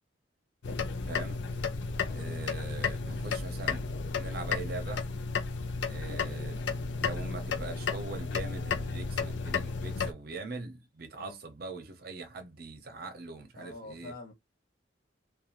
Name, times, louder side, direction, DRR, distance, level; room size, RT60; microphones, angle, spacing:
sound 1, 0.6-10.1, left 4 dB, 70° left, 0.5 m, -33 dB
voice 1, 1.1-1.4 2.1-3.8 4.2-5.0 5.9-6.6 7.0-14.1, right 3 dB, 55° right, 0.7 m, -42 dB
voice 2, 13.6-14.3, left 2 dB, 50° left, 1.4 m, -47 dB
2.9 x 2.3 x 2.4 m
head